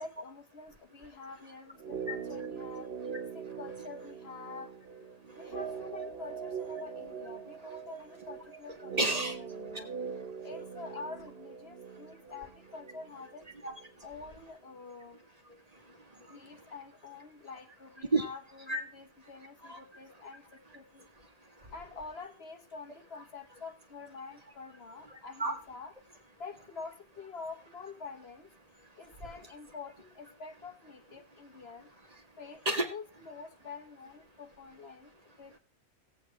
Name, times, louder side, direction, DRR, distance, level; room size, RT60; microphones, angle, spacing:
voice 1, 0.0-2.9 3.3-4.7 5.3-9.9 10.4-13.4 14.0-15.2 16.3-21.1 21.7-25.9 26.4-28.5 28.9-31.9 32.4-35.1 35.4-35.6, left 4 dB, 60° left, 6 dB, 1.4 m, -47 dB
sound 1, 1.8-13.9 14.2-14.3, right 6 dB, 60° right, 1.1 m, -42 dB
voice 2, 9.0-9.4 9.7-9.8 10.1-10.2 13.6-14.0 15.5-16.7 18.1-18.3 18.7-18.8 19.6-19.8 21.4-21.7 25.1-25.6 29.1-29.2 32.6-32.9, right 2 dB, 35° right, 4 dB, 1.5 m, -34 dB
18.0 x 8.3 x 3.3 m, 0.30 s
omnidirectional pair, 1.2 m